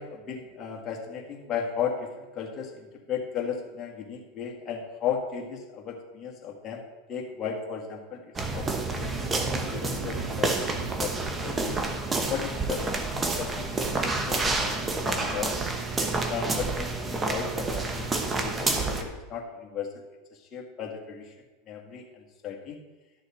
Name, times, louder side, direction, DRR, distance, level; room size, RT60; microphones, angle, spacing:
voice 1, 0.0-6.8 7.1-8.3 8.5-10.6 11.0-11.1 11.4-11.8 12.3-13.7 14.0-15.6 16.0-20.0 20.3-21.3 21.7-22.8, left 7 dB, 35° left, 0 dB, 1.7 m, -35 dB
sound 1, 8.4-19.0, right 3 dB, 20° right, 1.1 m, -29 dB
11.5 x 6.4 x 4.3 m, 1.1 s
supercardioid pair, 115°, 0 cm